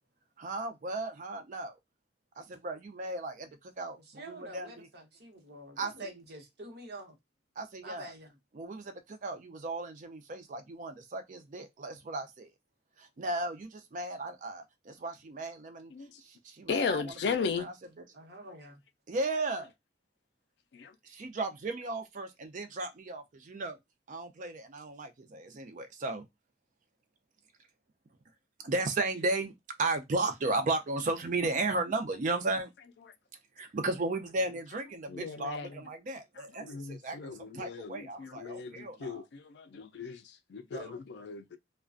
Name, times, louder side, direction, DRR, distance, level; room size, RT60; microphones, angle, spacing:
voice 1, 0.4-1.7 2.4-4.9 5.8-6.1 7.6-8.1 8.5-12.5 13.0-15.9 16.2-18.0 19.1-19.7 21.0-23.8 24.1-26.3 28.6-29.5 29.8-32.7 33.6-39.2 40.7-40.9, right 2 dB, 45° right, 0.4 m, -35 dB
voice 2, 4.1-7.1 7.8-8.3 18.1-18.8, right 1 dB, 60° right, 0.8 m, -47 dB
voice 3, 16.7-17.7 20.7-20.9 35.1-35.7 36.6-40.2 40.5-41.6, left 5 dB, 65° left, 0.3 m, -36 dB
2.4 x 2.2 x 2.4 m
head